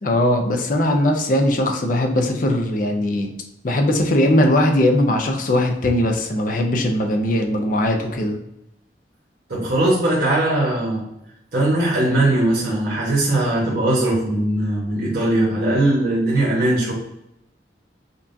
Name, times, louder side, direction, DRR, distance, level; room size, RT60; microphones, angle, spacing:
voice 1, 0.0-3.3 3.6-8.4, left 1 dB, 50° left, 3 dB, 0.5 m, -19 dB
voice 2, 9.5-11.0 11.5-16.9, right 1 dB, 55° right, -8 dB, 1.2 m, -20 dB
5.3 x 2.4 x 2.6 m, 0.83 s
head